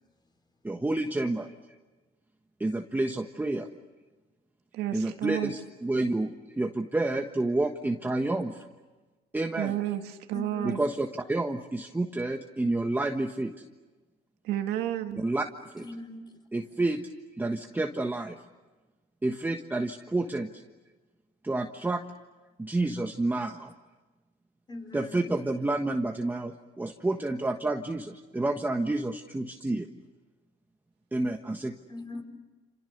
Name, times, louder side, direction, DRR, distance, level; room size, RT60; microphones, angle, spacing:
voice 1, 0.6-1.5 2.6-3.7 4.9-8.7 9.3-9.7 10.6-13.5 15.2-15.4 15.7-15.8 16.5-17.0 17.4-18.4 19.2-20.5 21.4-22.0 22.6-23.7 24.9-29.9 31.1-31.7, right 2 dB, 10° right, 1.4 m, -29 dB
voice 2, 4.7-5.5 9.6-10.8 14.4-15.2, right 12 dB, 85° right, 1.9 m, -31 dB
voice 3, 10.3-10.9 15.8-16.4 24.7-25.4 31.9-32.2, left 2 dB, 25° left, 5.2 m, -41 dB
29.0 x 28.0 x 6.7 m
cardioid pair, 110°, 17 cm